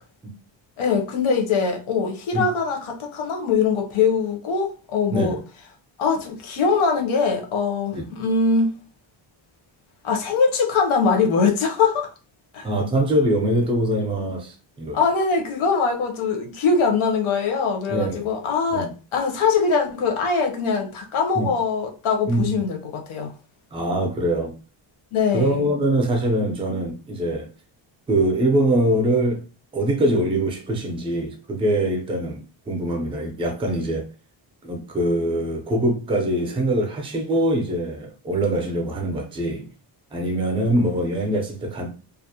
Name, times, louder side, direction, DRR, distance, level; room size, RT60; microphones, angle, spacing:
voice 1, 0.8-5.4 6.0-8.7 10.0-12.1 12.5-12.7 14.9-23.3 25.1-25.7, left 5 dB, 80° left, 0.8 m, -22 dB
voice 2, 12.6-15.0 17.9-18.3 18.7-18.9 21.3-21.5 22.3-22.5 23.7-24.5 25.3-27.5 28.1-29.4 29.7-34.0 34.6-39.7 40.1-41.9, right 1 dB, 10° right, 0.4 m, -23 dB
2.4 x 2.0 x 2.7 m
cardioid pair, 155°, 48 cm